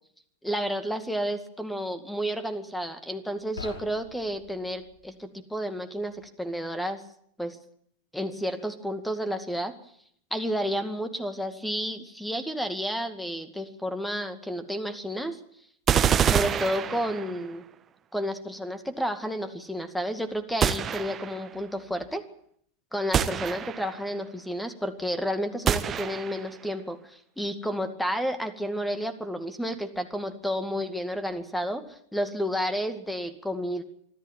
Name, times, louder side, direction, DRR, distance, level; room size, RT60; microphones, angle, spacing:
voice 1, 0.4-7.0 7.4-7.6 8.1-9.7 10.3-15.4 16.3-17.6 18.1-22.2 22.9-33.8, equal, 5° left, 10 dB, 2.2 m, -31 dB
sound 1, 3.4-5.0, left 4 dB, 65° left, 6.2 m, -44 dB
sound 2, 15.9-17.5 20.6-21.5 23.1-24.1 25.7-26.5, right 8 dB, 25° right, 1.2 m, -26 dB
25.5 x 13.0 x 9.3 m, 0.68 s
figure-of-eight pair, 90°, 0 cm